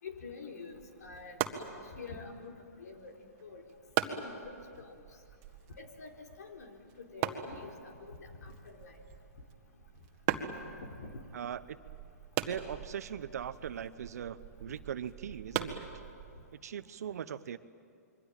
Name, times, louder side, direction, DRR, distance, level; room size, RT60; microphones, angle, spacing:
voice 1, 0.0-3.1 3.4-3.6 4.0-5.0 5.8-9.0 10.3-11.2, left 4 dB, 75° left, 3 dB, 4.3 m, -47 dB
sound 1, 0.7-16.5, right 11 dB, 35° right, 1.7 m, -41 dB
voice 2, 11.3-11.8 12.4-15.9 16.6-17.6, right 9 dB, 70° right, 13 dB, 0.9 m, -40 dB
27.0 x 23.5 x 9.0 m, 2.4 s
hypercardioid pair, 130°, 9 cm